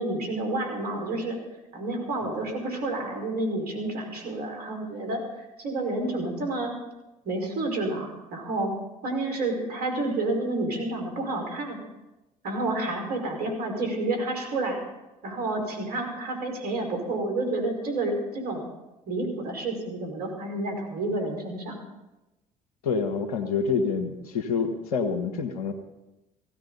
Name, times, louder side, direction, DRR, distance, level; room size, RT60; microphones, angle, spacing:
voice 1, 0.0-1.4 1.7-5.2 5.6-6.7 7.2-8.7 9.0-11.8 12.4-14.8 15.2-18.6 19.1-21.8, right 2 dB, 60° right, 3 dB, 5.1 m, -29 dB
voice 2, 22.8-25.7, left 5 dB, 90° left, 8 dB, 1.4 m, -27 dB
17.0 x 16.0 x 4.0 m, 1.0 s
hypercardioid pair, 60°, 18 cm